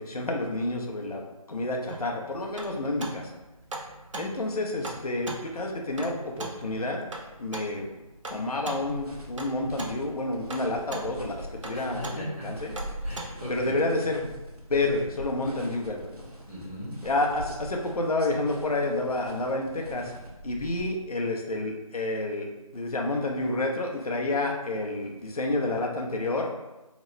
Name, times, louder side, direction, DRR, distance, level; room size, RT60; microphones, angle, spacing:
voice 1, 0.0-3.3 4.1-7.0 7.4-7.9 8.3-12.7 13.5-14.3 14.7-16.2 17.0-20.1 20.4-26.5, left 2 dB, 75° left, 1 dB, 0.6 m, -29 dB
sound 1, 1.9-13.5, right 2 dB, 55° right, 0.5 m, -41 dB
sound 2, 8.8-20.8, equal, 90° right, 0.7 m, -43 dB
voice 2, 11.7-12.5 13.0-13.7 16.5-17.0, equal, 15° left, -13 dB, 0.4 m, -38 dB
2.9 x 2.3 x 3.0 m, 1.0 s
figure-of-eight pair, 160°, 19 cm